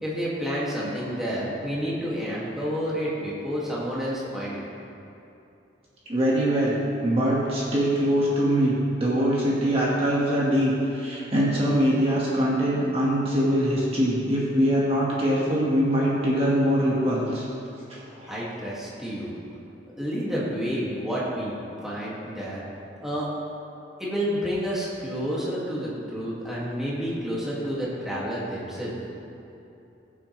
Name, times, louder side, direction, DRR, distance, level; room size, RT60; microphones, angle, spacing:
voice 1, 0.0-4.6 18.3-19.4 20.0-22.6 23.0-23.3 24.0-28.9, equal, ahead, -8 dB, 2.1 m, -29 dB
voice 2, 6.1-6.8 7.0-17.5 17.9-18.3, equal, 30° right, -6 dB, 1.7 m, -23 dB
20.0 x 7.5 x 3.3 m, 2.8 s
head